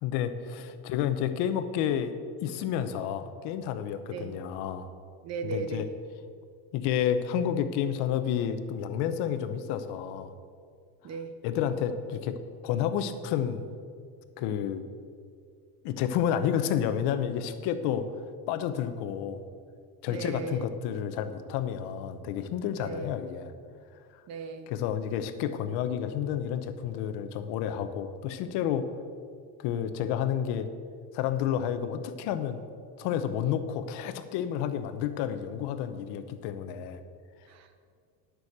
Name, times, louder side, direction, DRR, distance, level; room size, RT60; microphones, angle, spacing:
voice 1, 0.0-2.1 2.4-4.9 5.4-5.9 6.7-10.3 11.4-12.3 12.6-13.7 14.4-14.8 15.8-18.0 18.5-19.4 20.0-23.5 24.7-28.9 29.6-30.7 31.1-32.6 33.0-37.0, left 9 dB, 55° left, 10 dB, 1.0 m, -30 dB
voice 2, 5.2-5.9 11.0-11.3 20.1-20.7 22.8-23.1 24.3-24.7 37.5-37.9, right 4 dB, 35° right, 8 dB, 1.0 m, -37 dB
10.5 x 6.5 x 8.0 m, 2.2 s
cardioid pair, 150°, 48 cm